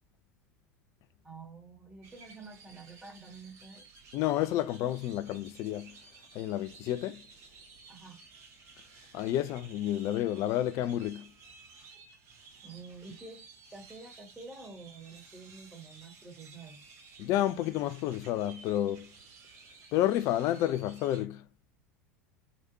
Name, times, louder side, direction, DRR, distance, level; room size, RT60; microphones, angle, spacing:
voice 1, 1.2-3.9 7.9-8.2 11.9-12.0 12.6-13.4 13.7-16.8, right 4 dB, 10° right, 1.6 m, -48 dB
sound 1, 2.0-21.2, right 4 dB, 40° right, 1.2 m, -55 dB
voice 2, 4.1-6.0 6.3-7.2 9.1-11.3 17.2-19.1 19.9-21.4, left 13 dB, 40° left, 0.3 m, -30 dB
3.2 x 3.0 x 2.6 m
figure-of-eight pair, 80°, 8 cm